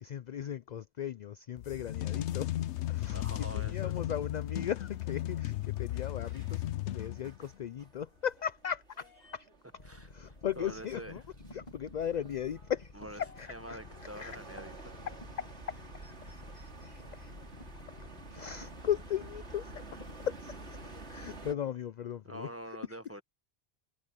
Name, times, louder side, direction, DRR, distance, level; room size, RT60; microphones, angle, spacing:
voice 1, 0.0-2.6 2.9-9.5 10.1-11.2 11.5-13.8 14.2-14.4 14.8-17.3 18.0-22.5 22.9-23.0, left 9 dB, 55° left, 0.5 m, -38 dB
sound 1, 1.6-7.5, left 14 dB, 85° left, 0.9 m, -35 dB
voice 2, 3.1-3.9 9.9-11.1 13.0-13.2 13.5-14.7 22.2-23.2, right 1 dB, 15° right, 1.2 m, -45 dB
sound 2, 5.0-21.5, right 2 dB, 80° right, 3.1 m, -51 dB
sound 3, 9.8-21.5, left 2 dB, 40° left, 1.9 m, -52 dB
omnidirectional pair, 1.1 m